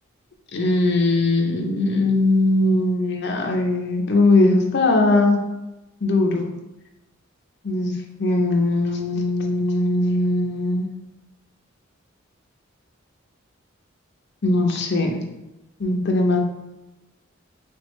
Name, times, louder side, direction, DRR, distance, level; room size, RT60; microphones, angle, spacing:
voice 1, 0.5-5.4 6.0-6.5 7.6-7.9 8.2-10.9 14.4-15.2 15.8-16.4, left 2 dB, 55° left, 2 dB, 0.6 m, -20 dB
3.4 x 3.3 x 3.1 m, 1.0 s
head